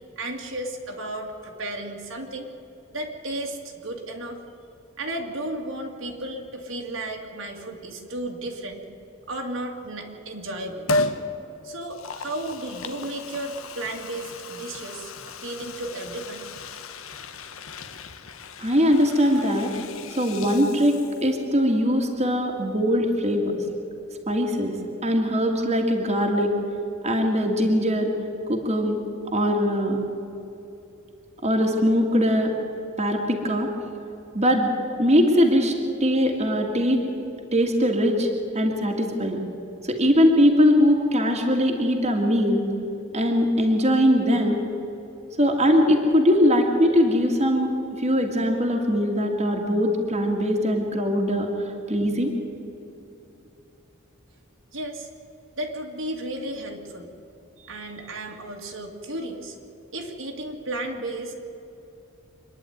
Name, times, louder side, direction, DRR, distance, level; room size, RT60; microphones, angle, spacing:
voice 1, 0.2-2.5 2.9-4.4 5.0-8.9 9.3-10.9 11.6-16.5 54.7-55.1 55.6-57.1 57.6-59.6 59.9-61.3, right 1 dB, 65° right, 1 dB, 2.3 m, -34 dB
Liquid, 10.9-11.2 11.8-21.5 21.8-21.9, left 2 dB, 75° left, 1.2 m, -34 dB
voice 2, 18.6-19.7 20.2-23.6 24.3-24.7 25.0-26.5 27.0-28.1 28.5-29.0 29.3-30.0 31.4-32.5 33.0-33.7 34.3-34.7 35.0-35.7 36.0-37.0 37.5-38.3 38.5-39.4 39.8-42.6 43.1-44.6 45.4-47.7 48.0-51.5 51.9-52.3, equal, 30° right, 1 dB, 2.1 m, -21 dB
26.0 x 10.5 x 9.3 m, 2.8 s
head